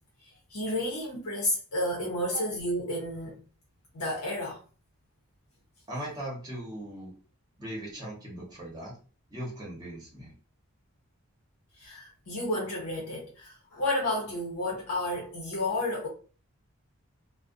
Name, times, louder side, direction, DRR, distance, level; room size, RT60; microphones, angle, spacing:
voice 1, 0.5-3.4 3.9-4.6 11.8-16.1, left 1 dB, 85° left, 0.7 m, -31 dB
voice 2, 5.9-7.2 7.6-9.0 9.3-10.3, right 1 dB, 20° right, 0.9 m, -39 dB
2.4 x 2.1 x 2.5 m
head